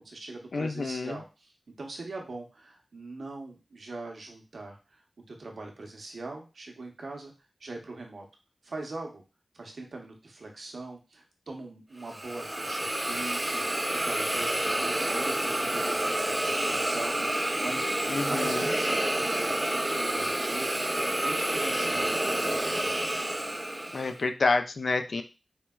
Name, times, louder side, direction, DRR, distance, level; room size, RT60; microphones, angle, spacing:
voice 1, 0.0-1.5 1.8-5.0 5.3-7.3 7.6-8.2 8.6-9.2 9.5-20.7 20.9-23.2, right 2 dB, 75° right, 1 dB, 0.7 m, -42 dB
voice 2, 0.5-1.2 18.1-18.7 23.9-25.2, left 3 dB, 70° left, 7 dB, 0.3 m, -28 dB
Hiss, 12.0-24.2, right 1 dB, 25° right, 0.6 m, -29 dB
4.3 x 2.1 x 2.2 m, 0.31 s
cardioid pair, 45°, 0 cm